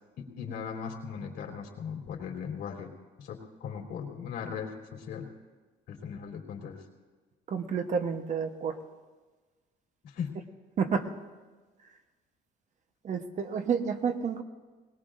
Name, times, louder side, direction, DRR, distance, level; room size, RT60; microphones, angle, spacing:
voice 1, 0.2-2.9 3.2-5.3 5.9-6.8 10.0-10.4, left 7 dB, 70° left, -1 dB, 3.4 m, -38 dB
voice 2, 7.5-8.8 10.8-11.1 13.0-14.4, right 6 dB, 45° right, 6 dB, 1.1 m, -30 dB
21.5 x 18.5 x 2.6 m, 1.3 s
cardioid pair, 110°, 17 cm